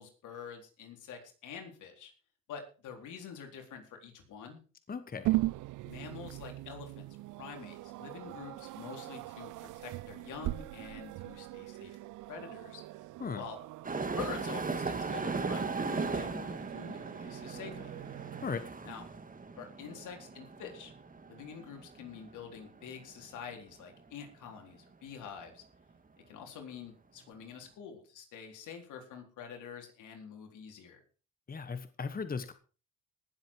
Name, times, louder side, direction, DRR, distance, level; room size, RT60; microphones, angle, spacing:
voice 1, 0.0-2.1 2.5-4.6 5.9-7.1 7.4-12.8 13.3-13.6 14.2-17.9 18.8-19.0 19.6-20.9 21.3-25.6 26.3-31.0, left 6 dB, 80° left, 3 dB, 4.0 m, -46 dB
voice 2, 4.9-5.4 13.2-13.4 18.4-18.7 31.5-32.5, left 5 dB, 30° left, 10 dB, 1.3 m, -37 dB
sound 1, 5.2-18.5, right 18 dB, 85° right, 0.6 m, -40 dB
sound 2, 13.8-23.4 24.0-24.1 24.9-25.0, right 4 dB, 25° right, 2.2 m, -38 dB
19.0 x 7.9 x 4.7 m, 0.37 s
cardioid pair, 90°, 30 cm